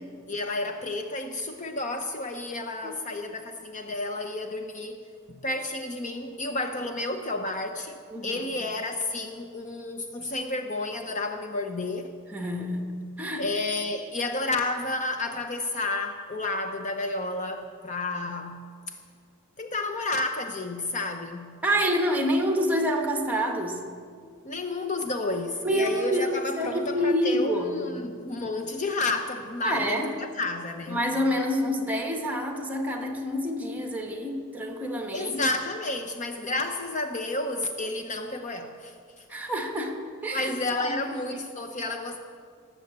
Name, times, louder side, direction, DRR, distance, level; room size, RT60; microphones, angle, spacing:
voice 1, 0.3-5.0 5.3-12.2 13.4-18.6 19.6-21.5 24.4-31.0 35.1-39.2 40.3-42.2, left 2 dB, 35° left, 6 dB, 0.7 m, -31 dB
voice 2, 8.1-8.6 12.3-13.5 21.6-23.8 25.6-27.9 29.6-30.1 30.9-35.4 39.3-40.5 40.8-41.4, equal, 5° right, 3 dB, 1.5 m, -28 dB
18.5 x 7.7 x 7.9 m, 2.2 s
head